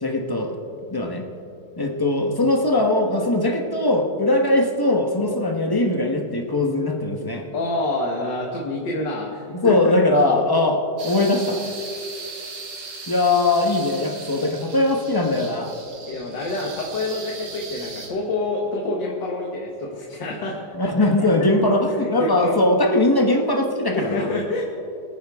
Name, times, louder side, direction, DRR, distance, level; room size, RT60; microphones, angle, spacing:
voice 1, 0.0-0.6 0.9-1.2 1.8-7.4 9.5-11.6 13.1-15.7 20.7-24.3, left 2 dB, 15° left, 2 dB, 0.9 m, -20 dB
voice 2, 7.5-10.0 16.1-22.6 23.9-24.6, left 2 dB, 85° left, -1 dB, 2.0 m, -27 dB
sound 1, 11.0-18.1, right 4 dB, 80° right, 2.3 m, -37 dB
24.5 x 9.4 x 3.6 m, 2.6 s
omnidirectional pair, 1.9 m